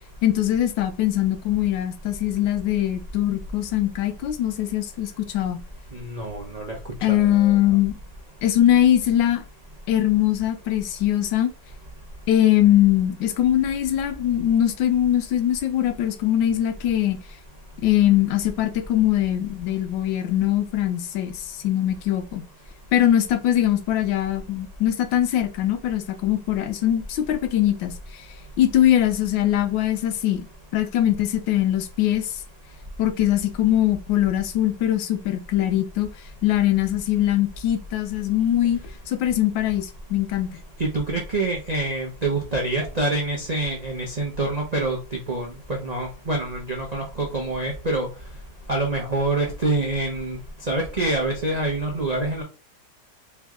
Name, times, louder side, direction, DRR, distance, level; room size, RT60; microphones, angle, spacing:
voice 1, 0.2-5.6 7.0-8.0 8.4-9.4 9.9-11.5 12.3-17.2 17.8-22.4 22.9-28.3 28.6-30.5 30.7-32.4 33.0-36.1 36.4-38.8 39.1-40.6, left 12 dB, 75° left, 1.3 m, -22 dB
voice 2, 5.9-6.8 7.1-7.8 40.8-48.1 48.7-50.4 50.7-52.4, right 2 dB, 80° right, 0.3 m, -26 dB
3.4 x 3.1 x 3.6 m
omnidirectional pair, 2.1 m